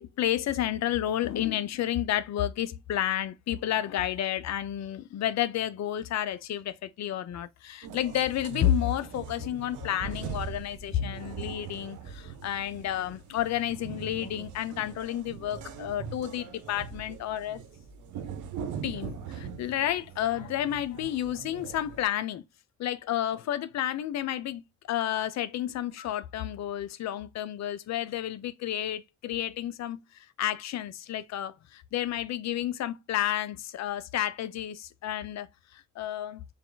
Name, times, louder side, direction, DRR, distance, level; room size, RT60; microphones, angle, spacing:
voice 1, 0.0-17.6 18.8-22.4 22.8-24.6 24.9-35.5 35.7-36.4, left 11 dB, 65° left, 0.6 m, -31 dB
sound 1, 7.8-22.0, right 6 dB, 85° right, 0.7 m, -41 dB
3.6 x 2.4 x 3.8 m
cardioid pair, 90°, 30 cm